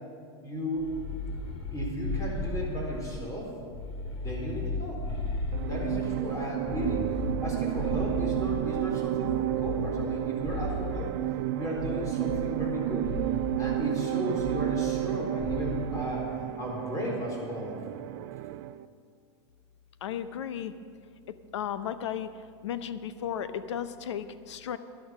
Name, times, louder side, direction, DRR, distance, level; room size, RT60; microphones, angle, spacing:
voice 1, 0.4-1.0 1.7-3.5 4.2-5.0 5.5-11.1 11.5-13.2 13.6-16.3 16.6-17.8, equal, 20° left, -2 dB, 4.1 m, -35 dB
sound 1, 0.8-3.2 3.7-6.1 6.6-8.8 9.2-11.1 11.8-12.7 13.0-13.5 14.4-15.1 15.4-15.8, left 2 dB, 40° left, 3.0 m, -35 dB
sound 2, 5.5-18.8, right 15 dB, 55° right, 0.5 m, -31 dB
voice 2, 20.0-20.7 21.3-22.3 22.6-24.8, left 9 dB, 85° left, 12 dB, 0.7 m, -34 dB
12.0 x 11.0 x 6.1 m, 2.2 s
hypercardioid pair, 120°, 15 cm